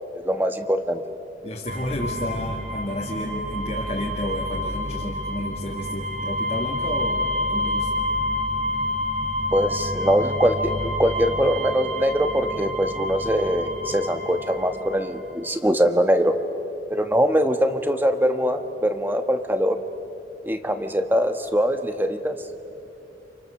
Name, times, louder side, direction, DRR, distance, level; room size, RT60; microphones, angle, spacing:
voice 1, 0.1-1.0 9.5-16.4 16.9-19.8 20.4-22.4, equal, 10° right, 7 dB, 1.2 m, -22 dB
voice 2, 1.4-7.9, left 1 dB, 35° left, -3 dB, 2.1 m, -31 dB
sound 1, 1.7-15.1, left 1 dB, 40° right, 4.6 m, -28 dB
30.0 x 28.0 x 6.6 m, 2.9 s
head